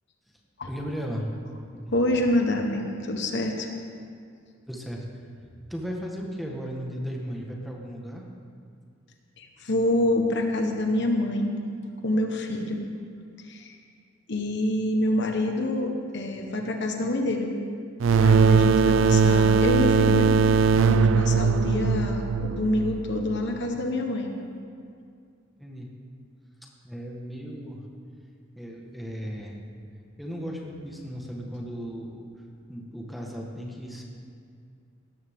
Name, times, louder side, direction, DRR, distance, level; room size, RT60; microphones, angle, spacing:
voice 1, 0.7-1.3 1.7-2.2 4.7-5.1 5.4-8.2 25.6-25.9 26.8-27.8 28.6-29.6 30.2-32.2 32.7-34.1, equal, ahead, -2 dB, 1.5 m, -36 dB
voice 2, 1.9-3.7 9.4-11.6 12.0-12.9 13.5-13.7 14.3-17.6 18.2-24.3, left 1 dB, 60° left, 3 dB, 1.3 m, -27 dB
sound 1, 18.0-23.4, right 5 dB, 70° right, 0.4 m, -20 dB
17.5 x 13.5 x 3.7 m, 2.3 s
head